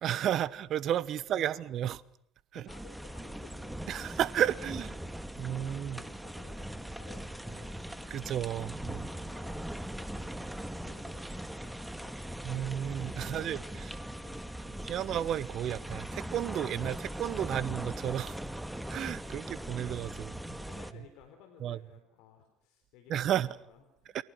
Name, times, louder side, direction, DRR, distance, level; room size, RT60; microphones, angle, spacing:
voice 1, 0.0-2.0 2.5-2.6 3.9-4.9 5.4-6.0 8.1-9.0 12.4-13.6 14.6-18.4 18.9-20.6 21.6-21.8 23.1-23.6 24.1-24.2, right 11 dB, 55° right, 1.1 m, -32 dB
voice 2, 1.2-1.6 2.5-4.1 4.6-5.2 5.5-8.3 8.9-9.7 9.9-12.7 13.2-14.9 17.5-17.6 19.2-19.5 19.8-24.2, left 7 dB, 70° left, 4.0 m, -57 dB
sound 1, 2.7-20.9, right 1 dB, 5° right, 1.7 m, -40 dB
29.0 x 23.5 x 6.3 m
hypercardioid pair, 65°, 0 cm